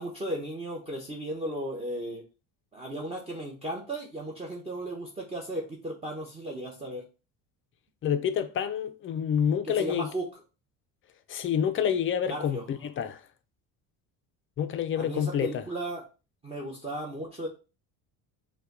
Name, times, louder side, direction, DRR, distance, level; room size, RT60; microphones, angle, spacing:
voice 1, 0.0-2.2 2.7-7.0 9.6-10.4 12.3-12.6 14.9-16.0 16.4-17.5, right 1 dB, 15° right, 0.8 m, -35 dB
voice 2, 8.0-10.1 11.3-13.2 14.6-15.6, left 8 dB, 35° left, 0.4 m, -28 dB
5.5 x 2.2 x 3.7 m
cardioid pair, 125°, 38 cm